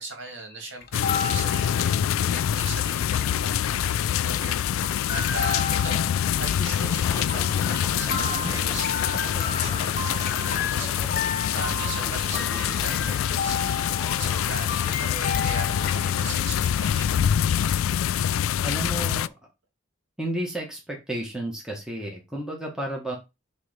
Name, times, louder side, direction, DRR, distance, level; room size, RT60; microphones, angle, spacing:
voice 1, 0.0-3.9 4.2-17.2, right 2 dB, 60° right, 2.3 m, -39 dB
sound 1, 0.8-2.5 2.8-2.9 3.0-3.3 3.8-4.5 4.8-16.2, left 5 dB, 45° left, 0.9 m, -33 dB
sound 2, 0.9-19.3, left 9 dB, 85° left, 0.3 m, -25 dB
sound 3, 6.8-15.8, left 2 dB, 15° left, 0.5 m, -40 dB
voice 2, 18.6-19.3 20.2-23.2, right 1 dB, 5° right, 1.4 m, -32 dB
6.6 x 3.1 x 5.0 m
head